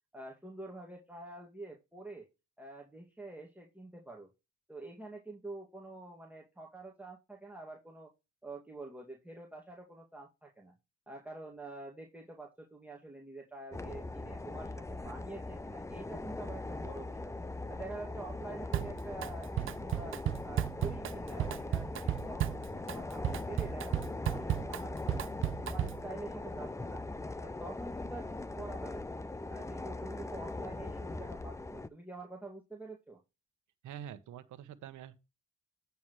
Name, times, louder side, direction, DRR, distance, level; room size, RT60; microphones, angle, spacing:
voice 1, 0.1-2.3 2.6-4.3 4.7-8.1 8.4-10.7 11.1-17.3 17.7-20.2 20.4-25.2 25.7-27.0 27.4-29.2 29.5-33.2, right 2 dB, 5° right, 2.2 m, -47 dB
sound 1, 13.7-31.9, left 2 dB, 10° left, 0.6 m, -41 dB
Drum kit, 18.7-19.3 19.6-26.1, right 12 dB, 45° right, 0.4 m, -34 dB
voice 2, 33.8-35.1, right 10 dB, 80° right, 1.2 m, -46 dB
9.1 x 6.9 x 3.2 m
cardioid pair, 90°, 30 cm